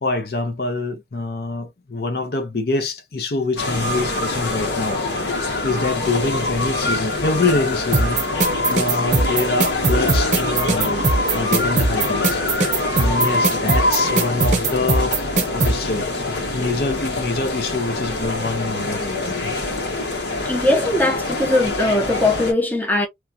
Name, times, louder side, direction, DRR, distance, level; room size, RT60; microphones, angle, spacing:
voice 1, 0.0-5.0 5.6-11.1 11.3-12.4 12.9-15.2 15.5-16.1 16.5-19.4, left 3 dB, 60° left, 0.7 m, -25 dB
sound 1, 3.6-22.5, left 2 dB, 80° left, 1.2 m, -24 dB
sound 2, 7.9-15.7, right 3 dB, 45° right, 0.8 m, -19 dB
voice 2, 20.4-23.1, left 1 dB, 10° left, 0.7 m, -20 dB
3.1 x 2.3 x 2.7 m
head